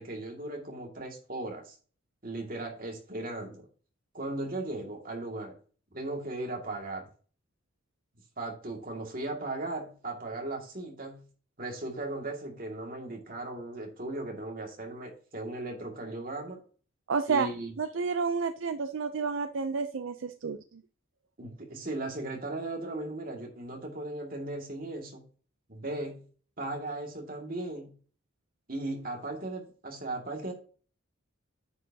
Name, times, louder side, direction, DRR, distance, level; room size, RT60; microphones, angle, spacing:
voice 1, 0.0-1.7 2.2-3.7 4.1-5.5 5.9-7.1 8.4-11.2 11.6-16.6 17.3-17.7 21.4-25.2 25.7-26.2 26.6-27.9 28.7-30.5, right 2 dB, 45° right, 1 dB, 2.2 m, -37 dB
voice 2, 17.1-17.5 17.8-20.8, right 5 dB, 70° right, 9 dB, 0.5 m, -30 dB
9.5 x 8.2 x 2.8 m, 0.40 s
head